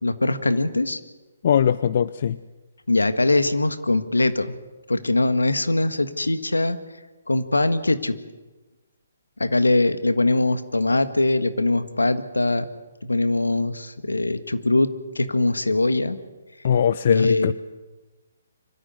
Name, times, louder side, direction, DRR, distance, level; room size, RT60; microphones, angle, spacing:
voice 1, 0.0-1.0 2.9-4.5 4.9-6.8 7.3-8.2 9.4-12.7 13.0-14.9 15.1-16.2 17.1-17.5, left 2 dB, 85° left, 11 dB, 1.7 m, -22 dB
voice 2, 1.4-2.4 16.6-17.5, left 8 dB, 50° left, 16 dB, 0.6 m, -20 dB
24.5 x 14.0 x 9.5 m, 1.2 s
figure-of-eight pair, 135°, 0 cm